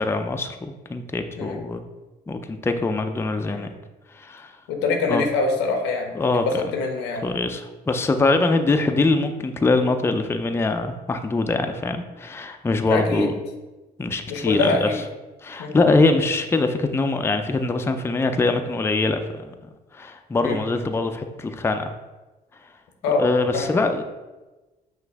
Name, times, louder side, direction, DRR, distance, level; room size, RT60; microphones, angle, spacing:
voice 1, 0.0-1.8 2.3-3.7 4.1-4.6 5.1-5.2 6.1-6.6 7.2-13.3 14.0-14.9 15.4-19.5 19.9-21.9 23.2-24.0, left 3 dB, 15° left, 6 dB, 0.4 m, -23 dB
voice 2, 4.7-7.3 12.8-13.3 14.3-15.0 15.6-15.7 20.4-20.6 23.0-23.2 23.5-23.7, left 3 dB, 85° left, 3 dB, 0.7 m, -24 dB
5.8 x 2.5 x 3.4 m, 1.1 s
supercardioid pair, 65°, 18 cm